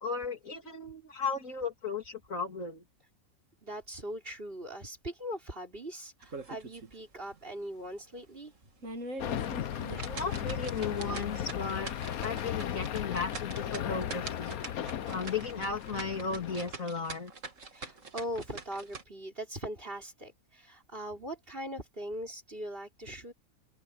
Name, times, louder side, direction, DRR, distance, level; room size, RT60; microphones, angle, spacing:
voice 1, 0.0-2.8 9.6-9.7 10.0-14.6 15.1-17.3, left 5 dB, 65° left, 3.2 m, -35 dB
voice 2, 3.6-8.5 9.9-10.0 10.8-11.3 14.2-14.4 17.7-23.3, equal, 40° right, 5.1 m, -41 dB
sound 1, 6.2-7.0 7.3-7.4 7.9-8.0 8.6-19.0, right 3 dB, 60° right, 2.6 m, -43 dB
sound 2, 9.2-16.7, left 10 dB, 85° left, 1.4 m, -36 dB
open air
omnidirectional pair, 1.5 m